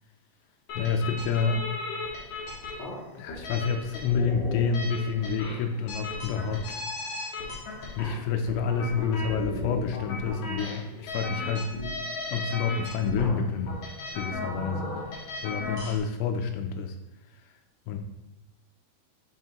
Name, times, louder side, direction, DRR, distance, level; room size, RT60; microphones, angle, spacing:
sound 1, 0.7-16.0, left 2 dB, 60° left, 2.1 m, -36 dB
voice 1, 0.8-1.6 3.2-6.8 8.0-11.7 12.3-13.8 14.1-17.0 17.9-18.0, left 5 dB, 80° left, 5 dB, 2.5 m, -28 dB
9.3 x 4.8 x 2.9 m, 0.91 s
omnidirectional pair, 5.2 m